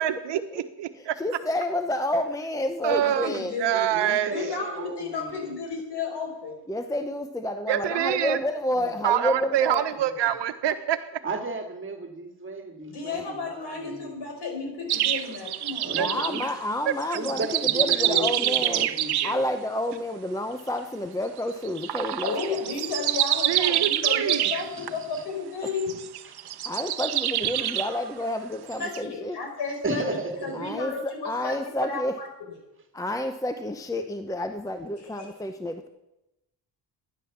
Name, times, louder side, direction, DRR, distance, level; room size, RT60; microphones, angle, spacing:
voice 1, 0.0-1.2 2.8-3.3 3.6-4.3 7.7-8.4 9.0-11.0 16.0-16.1 16.9-17.2 17.9-18.0 23.5-24.5, right 11 dB, 85° right, 1.2 m, -26 dB
voice 2, 1.2-3.6 6.7-9.8 15.9-18.9 19.2-22.6 26.6-29.4 30.5-32.2 32.9-35.9, left 1 dB, 10° left, 0.7 m, -29 dB
voice 3, 2.9-3.8 4.3-6.6 8.7-8.9 12.9-16.2 18.1-18.2 22.0-26.0 28.8-30.0 30.4-32.3 35.0-35.3, left 4 dB, 75° left, 5.0 m, -33 dB
voice 4, 3.9-5.5 11.2-14.1 15.3-15.4 15.8-16.5 17.1-19.5 23.0-23.1 23.5-23.8 24.3-24.4 24.7-24.9 25.1-25.2 29.8-30.7, right 3 dB, 30° right, 2.2 m, -34 dB
sound 1, 14.9-16.5 17.0-19.4 21.6-24.9 25.7-28.0 28.7-29.0, right 12 dB, 65° right, 0.9 m, -26 dB
13.5 x 10.5 x 7.2 m
cardioid pair, 130°, 41 cm